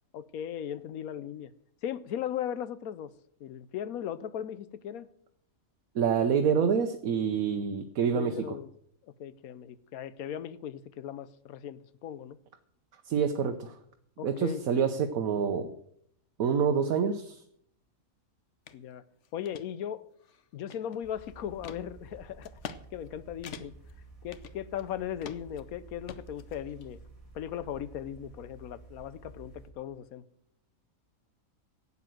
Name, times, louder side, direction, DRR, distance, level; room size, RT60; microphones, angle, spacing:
voice 1, 0.1-1.5 1.8-3.1 3.4-5.1 8.1-8.7 9.0-12.4 14.2-14.6 18.7-19.0 19.3-20.0 20.5-22.6 22.9-23.7 24.2-27.0 27.3-30.2, left 9 dB, 85° left, 1.2 m, -38 dB
voice 2, 5.9-8.6 13.1-13.7 14.2-15.7 16.4-17.4, right 6 dB, 75° right, 1.3 m, -27 dB
sound 1, 18.7-18.8 19.2-19.7 20.2-21.1 21.6-21.8 22.4-22.8 23.1-23.2 23.4-23.9 24.3-24.9 25.2-25.6 26.1-26.9, left 7 dB, 60° left, 1.0 m, -44 dB
sound 2, 21.0-29.7, right 3 dB, 25° right, 2.3 m, -51 dB
12.0 x 8.5 x 7.7 m
omnidirectional pair, 1.5 m